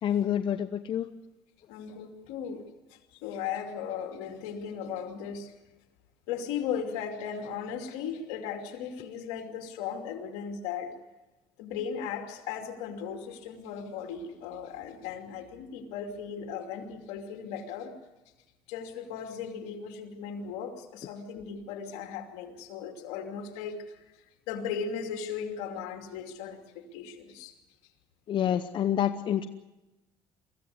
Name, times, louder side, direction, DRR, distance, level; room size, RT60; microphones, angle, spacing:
voice 1, 0.0-1.1 28.3-29.5, left 10 dB, 55° left, 9 dB, 0.8 m, -27 dB
voice 2, 1.7-2.7 3.2-5.5 6.3-10.9 11.6-17.9 18.7-24.0 24.5-27.5, left 7 dB, 90° left, 5 dB, 2.7 m, -37 dB
23.5 x 15.0 x 9.5 m, 1.0 s
cardioid pair, 90°, 10 cm